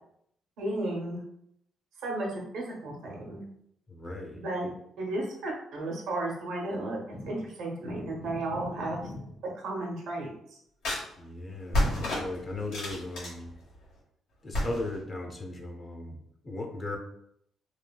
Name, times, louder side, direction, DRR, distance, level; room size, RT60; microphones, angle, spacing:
voice 1, 0.6-1.2 2.0-3.4 4.4-9.0 9.5-10.6, right 2 dB, 85° right, -1 dB, 0.9 m, -34 dB
voice 2, 3.9-4.4 11.2-13.5 14.4-17.0, left 2 dB, 35° left, 3 dB, 0.6 m, -37 dB
sound 1, 7.1-7.5 7.8-9.3 10.8-11.0 11.7-13.9 14.5-15.0, left 1 dB, 85° left, 1.4 m, -32 dB
3.1 x 2.6 x 2.2 m, 0.72 s
cardioid pair, 90°, 0 cm